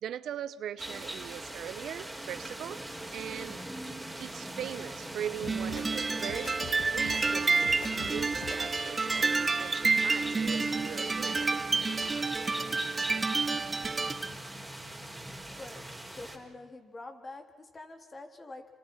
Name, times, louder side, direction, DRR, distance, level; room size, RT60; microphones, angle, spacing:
voice 1, 0.0-2.8 3.1-3.6 4.2-6.5 6.8-11.6, right 10 dB, 75° right, 14 dB, 1.0 m, -40 dB
sound 1, 0.8-16.4, right 1 dB, 5° right, 5.1 m, -41 dB
sound 2, 5.4-5.9 6.2-7.2 7.6-8.6, left 5 dB, 80° left, 3.1 m, -43 dB
sound 3, 5.5-14.3, right 4 dB, 30° right, 1.6 m, -29 dB
voice 2, 15.6-18.7, left 2 dB, 30° left, 6 dB, 3.8 m, -46 dB
29.0 x 25.5 x 5.8 m, 1.5 s
supercardioid pair, 70°, 0 cm